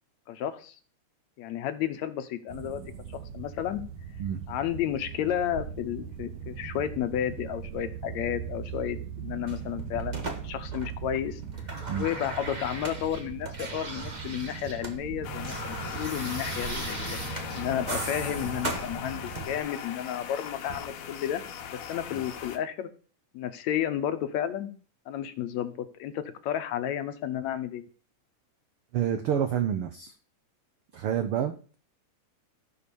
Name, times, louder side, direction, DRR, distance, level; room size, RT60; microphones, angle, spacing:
voice 1, 0.3-0.8 1.4-2.8 3.1-3.8 4.5-11.4 11.9-21.4 21.9-22.9 23.3-24.7 25.1-27.8, left 10 dB, 70° left, 10 dB, 2.0 m, -32 dB
sound 1, 2.5-19.6, right 7 dB, 75° right, 2.5 m, -40 dB
sound 2, 9.5-11.2 11.4-15.0 15.2-19.7 20.7-20.8, right 2 dB, 55° right, 0.4 m, -38 dB
sound 3, 15.2-22.6, left 8 dB, 85° left, 2.9 m, -39 dB
voice 2, 28.9-30.1 30.9-31.7, right 9 dB, 90° right, 9 dB, 1.2 m, -28 dB
14.0 x 5.0 x 6.9 m, 0.39 s
omnidirectional pair, 3.6 m